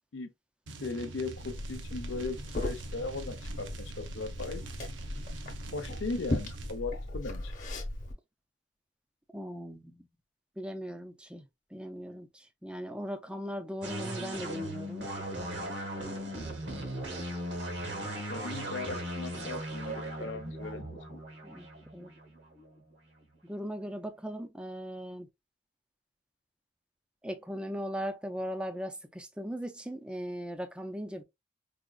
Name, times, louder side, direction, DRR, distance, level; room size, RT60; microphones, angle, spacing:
voice 1, 0.7-4.6 5.7-7.5 18.3-21.2, left 3 dB, 70° left, 0.6 m, -38 dB
sound 1, 0.7-6.8, right 3 dB, 75° right, 0.7 m, -45 dB
Liquid, 1.4-8.1, left 1 dB, 40° left, 0.9 m, -38 dB
voice 2, 9.3-10.1 10.6-15.1 21.4-21.7 21.9-22.1 23.4-25.3 27.2-31.2, equal, 5° right, 0.4 m, -38 dB
sound 2, 13.8-23.3, right 1 dB, 60° right, 1.0 m, -38 dB
4.9 x 2.4 x 2.3 m
head